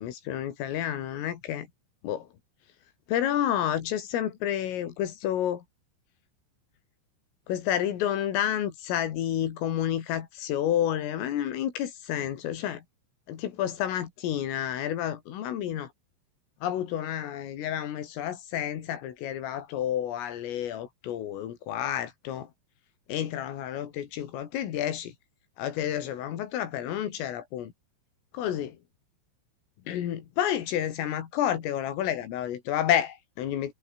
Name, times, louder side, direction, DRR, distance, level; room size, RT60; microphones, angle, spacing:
voice 1, 0.0-1.7 2.0-2.3 3.1-5.6 7.5-12.8 13.3-15.9 16.6-22.5 23.1-25.1 25.6-27.7 28.3-28.7 29.9-33.7, left 11 dB, 85° left, 5.2 m, -30 dB
omnidirectional pair, 5.7 m